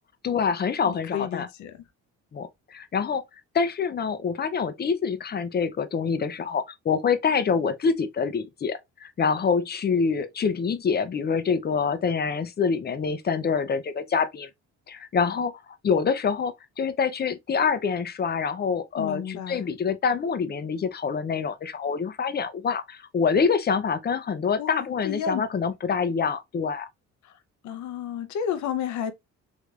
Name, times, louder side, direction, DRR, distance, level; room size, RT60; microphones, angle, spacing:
voice 1, 0.2-1.5 2.3-3.2 3.5-14.5 14.9-15.5 15.8-26.9, left 6 dB, 35° left, 0.5 m, -26 dB
voice 2, 0.9-1.8 19.0-19.6 24.6-25.4 27.2-27.4 27.6-29.1, left 9 dB, 70° left, 0.6 m, -32 dB
3.3 x 3.2 x 2.4 m
cardioid pair, 90°, 30 cm